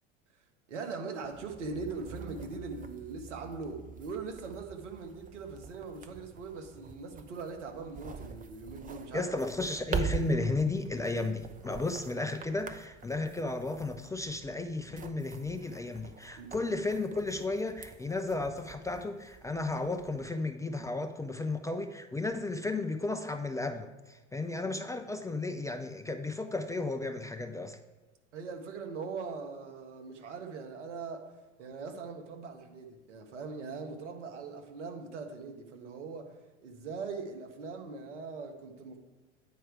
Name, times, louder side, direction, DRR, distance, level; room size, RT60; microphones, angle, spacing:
voice 1, 0.7-9.3 16.4-16.5 28.3-31.3 31.6-39.0, right 4 dB, 75° right, 4 dB, 1.3 m, -41 dB
sound 1, 1.2-20.3, right 6 dB, 20° right, 0.7 m, -44 dB
voice 2, 9.1-27.8, left 2 dB, 10° left, 6 dB, 0.4 m, -34 dB
9.1 x 4.6 x 4.7 m, 1.2 s
hypercardioid pair, 75°, 36 cm